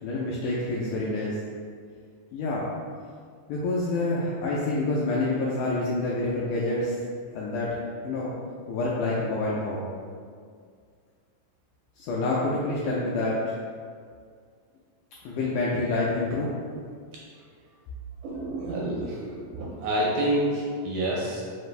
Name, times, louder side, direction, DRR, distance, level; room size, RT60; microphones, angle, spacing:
voice 1, 0.0-1.4 2.3-2.7 3.5-7.0 7.3-8.3 8.7-9.8 12.0-13.6 15.3-16.5, left 2 dB, 85° left, -6 dB, 1.7 m, -27 dB
voice 2, 18.2-21.4, right 1 dB, 80° right, -4 dB, 1.8 m, -28 dB
5.1 x 2.5 x 3.2 m, 2.1 s
omnidirectional pair, 3.9 m